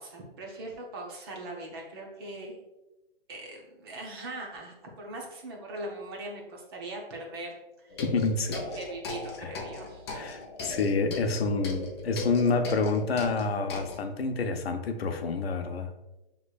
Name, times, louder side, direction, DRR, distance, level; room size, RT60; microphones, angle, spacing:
voice 1, 0.0-2.6 3.3-7.5 7.8-8.0 8.5-10.1, right 2 dB, 25° right, 0 dB, 0.7 m, -40 dB
sound 1, 7.9-14.0, left 2 dB, 30° left, 0.5 m, -38 dB
voice 2, 8.0-8.6 9.4-9.5 10.1-15.9, left 4 dB, 90° left, 6 dB, 0.7 m, -28 dB
6.2 x 3.1 x 2.3 m, 0.99 s
hypercardioid pair, 160°, 29 cm